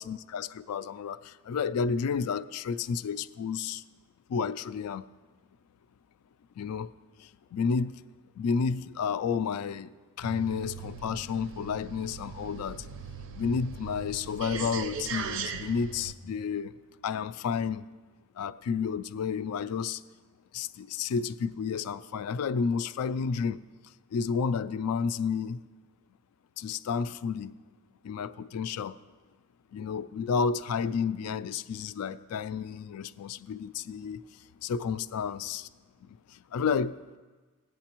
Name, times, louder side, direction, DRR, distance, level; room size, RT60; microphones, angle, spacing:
voice 1, 0.0-3.8 4.3-5.0 6.6-6.9 7.2-8.0 8.4-12.9 13.3-16.7 17.0-17.8 18.4-20.0 20.5-23.6 24.1-25.6 26.6-27.5 28.0-29.0 29.7-35.7 36.0-37.0, left 6 dB, 80° left, 0.3 m, -31 dB
sound 1, 10.2-16.1, right 6 dB, 60° right, 0.5 m, -39 dB
15.0 x 9.0 x 2.9 m
head